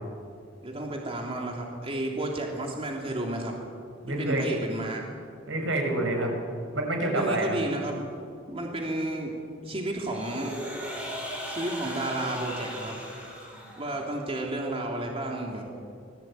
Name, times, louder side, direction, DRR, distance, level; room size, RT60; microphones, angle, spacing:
voice 1, 0.6-3.5 4.2-5.0 7.1-8.0 8.5-9.3 9.6-10.6 11.5-13.0 13.8-15.7, right 1 dB, 30° right, -1 dB, 3.2 m, -32 dB
voice 2, 4.0-4.7 5.5-6.3 6.7-7.6, right 1 dB, 80° right, 2 dB, 6.7 m, -27 dB
sound 1, 10.1-14.1, equal, 5° right, 6.8 m, -38 dB
25.5 x 20.0 x 9.3 m, 2.3 s
head